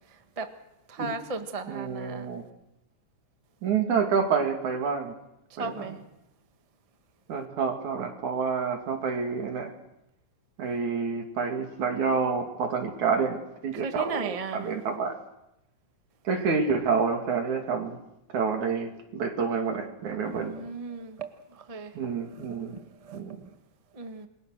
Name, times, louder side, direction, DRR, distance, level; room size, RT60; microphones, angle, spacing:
voice 1, 0.9-2.3 5.6-6.0 13.8-14.6 20.2-21.9 22.4-23.2 23.9-24.3, right 4 dB, 35° right, 7 dB, 0.5 m, -36 dB
voice 2, 1.7-2.4 3.6-5.1 5.6-6.0 7.3-9.7 10.6-15.2 16.3-18.0 18.3-20.6 21.9-22.8 23.1-23.4, right 5 dB, 70° right, 4 dB, 3.9 m, -28 dB
28.0 x 22.0 x 6.5 m, 0.85 s
omnidirectional pair, 3.6 m